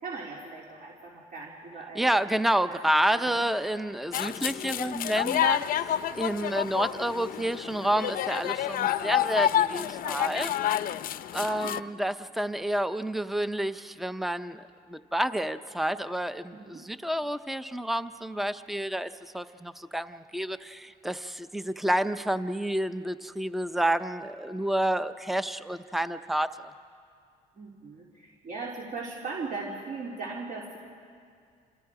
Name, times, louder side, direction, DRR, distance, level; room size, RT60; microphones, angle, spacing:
voice 1, 0.0-2.1 2.7-3.3 11.4-11.7 16.5-16.8 27.5-30.8, right 4 dB, 55° right, -3 dB, 3.2 m, -39 dB
voice 2, 2.0-5.6 6.1-10.5 11.3-14.6 14.9-26.7, right 1 dB, ahead, 12 dB, 0.7 m, -29 dB
sound 1, 4.1-11.8, left 11 dB, 55° left, 0.6 m, -29 dB
28.0 x 27.0 x 4.9 m, 2.3 s
cardioid pair, 110°, 17 cm